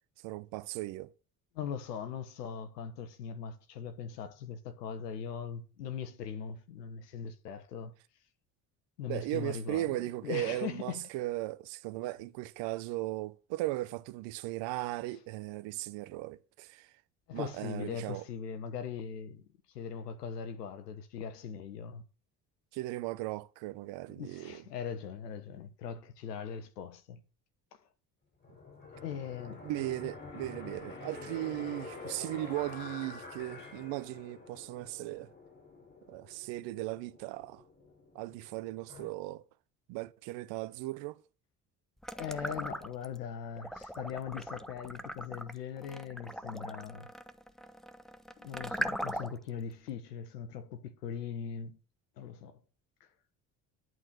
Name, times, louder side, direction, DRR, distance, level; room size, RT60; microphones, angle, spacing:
voice 1, 0.2-1.1 9.1-16.9 17.3-18.2 22.7-24.6 29.6-35.3 36.1-37.6 38.1-39.4 39.9-41.2, right 17 dB, 65° right, 0.9 m, -37 dB
voice 2, 1.5-7.9 9.0-11.0 17.3-19.4 19.7-22.0 24.2-27.2 27.7-27.8 28.9-29.6 42.1-47.1 48.4-51.8 52.2-52.6, left 7 dB, 85° left, 1.3 m, -40 dB
sound 1, 28.4-39.1, left 3 dB, 25° left, 5.3 m, -47 dB
sound 2, 42.0-43.2 43.6-49.5, equal, ahead, 0.9 m, -39 dB
11.0 x 4.6 x 8.2 m
hypercardioid pair, 55°, 47 cm